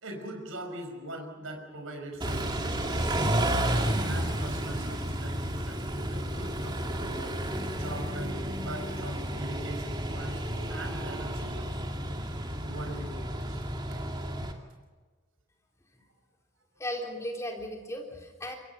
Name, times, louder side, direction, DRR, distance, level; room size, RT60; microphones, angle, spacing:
voice 1, 0.0-7.4 7.7-11.8 12.6-13.6 13.9-14.0, right 1 dB, 65° right, 4 dB, 5.4 m, -42 dB
Car / Idling / Accelerating revving vroom, 2.2-14.5, right 1 dB, 20° right, 2.3 m, -31 dB
voice 2, 16.8-18.6, left 1 dB, 15° left, 1 dB, 3.7 m, -36 dB
26.0 x 22.0 x 5.8 m, 1.4 s
head